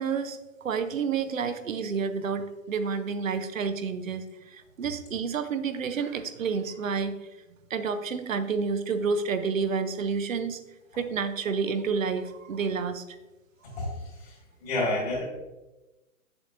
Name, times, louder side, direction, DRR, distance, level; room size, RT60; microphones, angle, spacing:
voice 1, 0.0-7.3 7.7-10.7 10.9-13.2, right 5 dB, 70° right, 10 dB, 0.8 m, -30 dB
voice 2, 14.6-15.2, left 2 dB, 40° left, -5 dB, 2.6 m, -28 dB
8.0 x 7.1 x 2.6 m, 1.1 s
hypercardioid pair, 165°, 42 cm